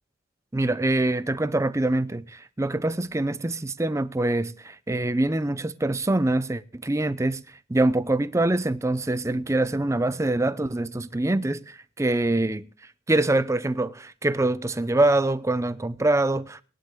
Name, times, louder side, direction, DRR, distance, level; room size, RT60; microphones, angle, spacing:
voice 1, 0.5-7.4 7.7-12.7 13.1-16.6, right 2 dB, 15° right, 0.5 m, -24 dB
20.5 x 11.5 x 2.2 m
head